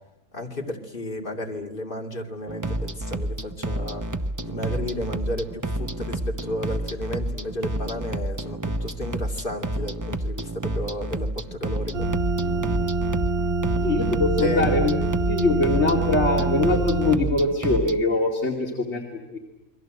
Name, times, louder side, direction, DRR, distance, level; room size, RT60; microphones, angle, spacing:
voice 1, 0.3-4.0 4.4-12.1 14.4-14.7, left 1 dB, 45° left, 1 dB, 2.8 m, -33 dB
sound 1, 2.5-18.0, right 1 dB, 15° right, 0.8 m, -30 dB
sound 2, 11.9-17.2, right 2 dB, 55° right, 2.0 m, -25 dB
voice 2, 13.8-14.9 15.3-19.4, left 2 dB, 60° left, 0 dB, 2.9 m, -23 dB
29.5 x 22.5 x 7.8 m, 0.92 s
omnidirectional pair, 1.3 m